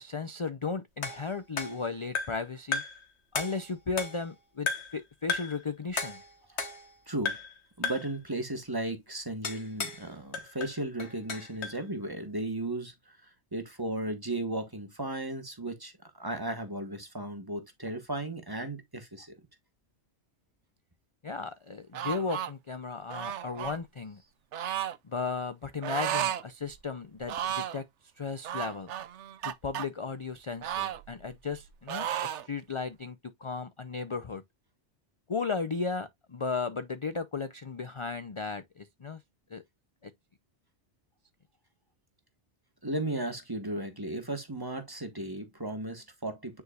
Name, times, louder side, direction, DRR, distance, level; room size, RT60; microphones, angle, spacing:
voice 1, 0.0-2.8 3.3-6.2 21.2-24.2 25.0-27.9 28.2-28.9 29.4-34.4 35.3-39.2 39.5-39.6 40.0-40.1, left 4 dB, 35° left, 0.5 m, -35 dB
sound 1, 1.0-2.5 2.7-3.1 3.3-4.3 4.7-5.0 5.3-5.6 6.0-7.0 7.2-7.6 7.8-8.2 9.4-10.0 10.3-11.8, left 4 dB, 65° left, 1.6 m, -35 dB
voice 2, 7.1-7.4 7.8-19.3 42.8-46.6, right 1 dB, 20° right, 1.3 m, -35 dB
sound 2, 21.9-22.5 23.1-23.8 24.5-25.0 25.8-26.4 26.7-26.8 27.2-27.8 28.4-29.9 30.6-31.6 31.9-32.5, right 10 dB, 80° right, 1.0 m, -33 dB
9.4 x 4.8 x 2.4 m
omnidirectional pair, 1.2 m